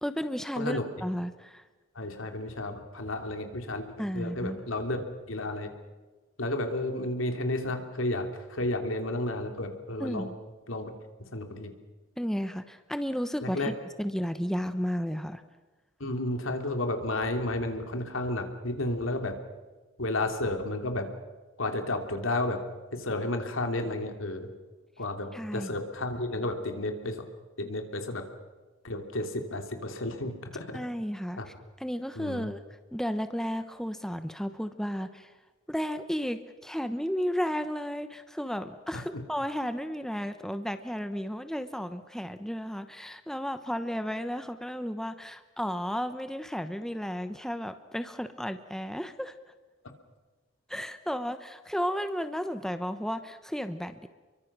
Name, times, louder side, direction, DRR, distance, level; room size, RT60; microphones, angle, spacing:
voice 1, 0.0-1.6 4.0-4.6 10.0-10.4 12.2-15.4 25.3-25.7 30.7-32.6 32.9-35.3 35.7-49.3 50.7-54.1, equal, ahead, 9 dB, 0.9 m, -33 dB
voice 2, 1.9-3.9 4.1-5.7 6.4-10.3 10.7-10.9 11.3-11.7 13.4-13.7 16.0-19.4 20.0-21.1 21.6-22.6 22.9-24.5 25.0-27.2 27.6-28.2 28.8-30.8 31.4-31.5 32.2-32.5, left 2 dB, 85° left, 5 dB, 3.0 m, -32 dB
30.0 x 23.5 x 6.1 m, 1.3 s
head